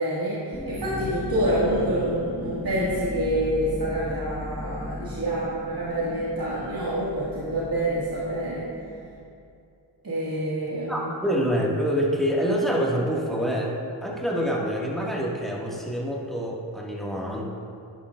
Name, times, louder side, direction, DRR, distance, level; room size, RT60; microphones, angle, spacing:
voice 1, 0.0-8.6 10.0-11.1, right 1 dB, 50° right, -10 dB, 2.3 m, -27 dB
sound 1, 0.5-9.2, left 1 dB, 20° left, 1.4 m, -36 dB
voice 2, 10.9-17.4, equal, ahead, -4 dB, 2.0 m, -26 dB
11.5 x 10.5 x 2.6 m, 2.5 s
cardioid pair, 55°, 45 cm